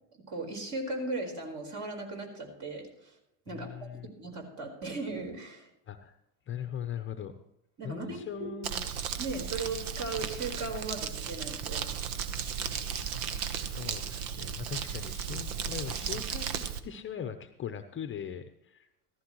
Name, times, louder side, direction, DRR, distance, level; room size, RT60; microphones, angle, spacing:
voice 1, 0.3-3.1 3.5-5.7 7.8-8.2 9.2-11.8, right 3 dB, 40° right, 2 dB, 4.6 m, -37 dB
voice 2, 3.5-4.1 5.9-6.2 6.5-7.4 7.8-8.9 12.8-18.9, left 8 dB, 25° left, 9 dB, 0.8 m, -40 dB
Crumpling crinkling, 8.6-16.8, right 7 dB, 70° right, 1.2 m, -35 dB
15.0 x 14.0 x 3.1 m, 0.82 s
hypercardioid pair, 85°, 45 cm